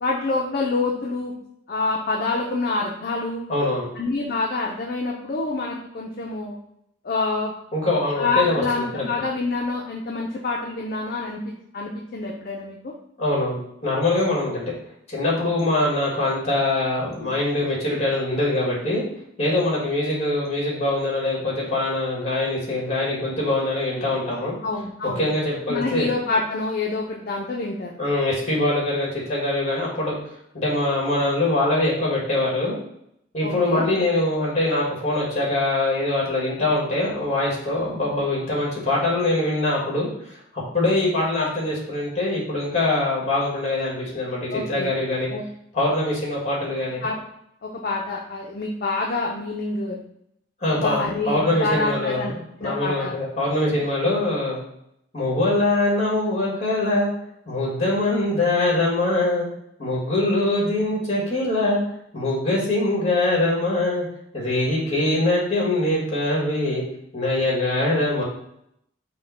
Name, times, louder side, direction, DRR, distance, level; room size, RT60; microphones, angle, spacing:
voice 1, 0.0-1.3 1.7-3.5 4.0-6.6 7.0-7.5 8.2-12.9 24.6-25.3 25.7-27.9 33.4-33.9 44.5-44.9 45.3-45.4 47.0-47.2 47.6-50.0 50.8-52.3 52.6-53.1 53.7-53.8, left 3 dB, 50° left, -1 dB, 0.5 m, -27 dB
voice 2, 3.5-3.9 7.7-9.0 13.2-14.7 15.1-19.0 19.4-24.5 25.0-26.1 28.0-32.8 33.3-40.1 40.5-45.3 45.7-47.1 50.6-54.6 55.1-57.1 57.5-59.5 59.8-61.8 62.1-64.0 64.3-66.8 67.1-68.2, left 2 dB, 35° left, -4 dB, 1.7 m, -23 dB
5.3 x 2.2 x 4.0 m, 0.76 s
head